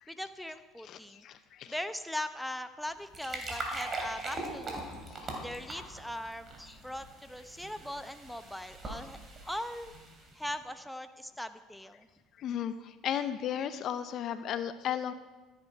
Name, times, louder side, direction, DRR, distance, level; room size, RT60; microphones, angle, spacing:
voice 1, 0.1-1.2 1.7-4.9 5.4-9.2 9.5-9.9 10.3-12.1, left 1 dB, ahead, 9 dB, 0.8 m, -40 dB
voice 2, 0.8-1.7 5.1-5.2 12.4-15.1, left 9 dB, 55° left, 12 dB, 0.7 m, -35 dB
sound 1, 2.9-10.4, right 2 dB, 35° right, 3.1 m, -41 dB
13.5 x 9.9 x 4.7 m, 1.2 s
supercardioid pair, 80°, 0 cm